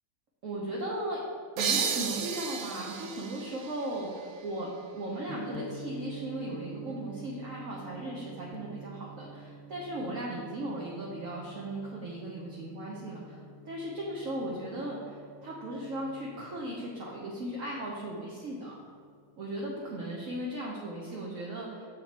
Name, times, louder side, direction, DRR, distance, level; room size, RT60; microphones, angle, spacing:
voice 1, 0.4-1.2 1.6-18.8 19.4-21.9, right 1 dB, 55° right, -4 dB, 1.0 m, -37 dB
sound 1, 1.6-5.0, right 6 dB, 80° right, 1.5 m, -34 dB
Gong, 5.3-19.5, right 2 dB, 70° left, 1.3 m, -47 dB
7.7 x 5.7 x 4.2 m, 2.2 s
omnidirectional pair, 2.2 m